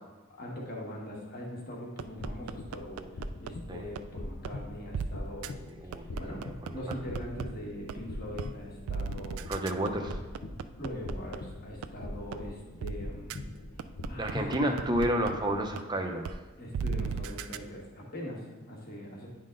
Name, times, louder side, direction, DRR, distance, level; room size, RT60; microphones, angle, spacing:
voice 1, 0.3-3.1 3.4-5.6 5.9-9.4 10.8-13.4 14.0-14.6 16.6-19.3, equal, 45° left, -2 dB, 1.4 m, -41 dB
sound 1, 2.0-3.5 4.0-4.1 4.4-4.5 4.9-5.1 5.4-5.5 5.9-7.4 7.9-8.0 8.4-8.5 8.9-11.4 11.8-11.9 12.3-12.4 12.8-12.9 13.3-13.4 13.8-15.3 15.8-15.9 16.2-16.3 16.7-17.6, right 6 dB, 75° right, 0.3 m, -35 dB
sound 2, 2.1-15.7, left 1 dB, 75° left, 0.7 m, -42 dB
voice 2, 5.7-6.0 6.3-6.9 9.5-10.2 14.2-16.2, right 1 dB, 20° right, 3 dB, 0.6 m, -31 dB
10.0 x 3.8 x 3.7 m, 1.3 s
head